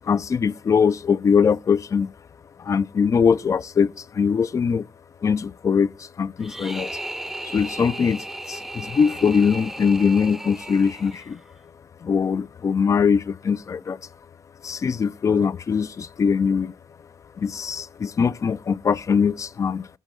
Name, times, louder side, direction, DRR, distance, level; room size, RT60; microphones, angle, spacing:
voice 1, 0.0-2.1 2.6-4.9 5.2-6.9 7.4-11.4 12.0-14.0 14.6-16.7 17.4-19.9, left 6 dB, 45° left, 0.4 m, -22 dB
sound 1, 6.4-11.5, right 1 dB, 5° right, 0.6 m, -35 dB
13.5 x 6.5 x 6.2 m
cardioid pair, 100°, 8 cm